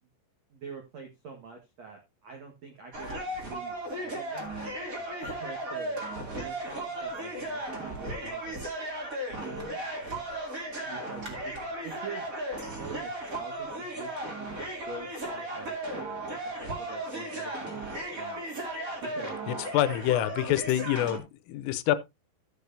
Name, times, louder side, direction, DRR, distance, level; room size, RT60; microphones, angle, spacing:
voice 1, 0.5-4.5 5.2-8.6 9.3-9.8 10.8-12.3 12.6-18.4 19.0-19.4, right 4 dB, 75° right, 1.5 m, -46 dB
sound 1, 2.9-21.2, right 1 dB, 25° right, 2.0 m, -36 dB
voice 2, 19.7-22.0, left 13 dB, 85° left, 3.3 m, -26 dB
15.5 x 6.8 x 2.7 m
omnidirectional pair, 5.7 m